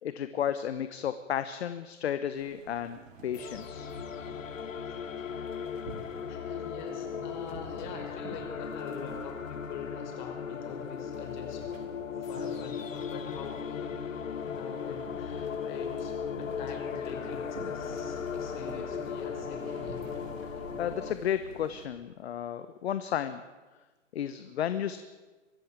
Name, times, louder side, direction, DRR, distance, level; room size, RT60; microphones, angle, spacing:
voice 1, 0.0-3.9 20.8-23.4 24.1-25.0, left 9 dB, 55° left, 12 dB, 1.2 m, -33 dB
sound 1, 2.3-21.9, right 3 dB, 80° right, 4.8 m, -48 dB
sound 2, 3.3-21.1, left 7 dB, 80° left, 1.4 m, -37 dB
voice 2, 6.3-11.6 12.2-14.0 14.4-20.1, left 6 dB, 35° left, 3 dB, 5.5 m, -44 dB
23.5 x 13.0 x 8.9 m, 1.3 s
hypercardioid pair, 150°, 39 cm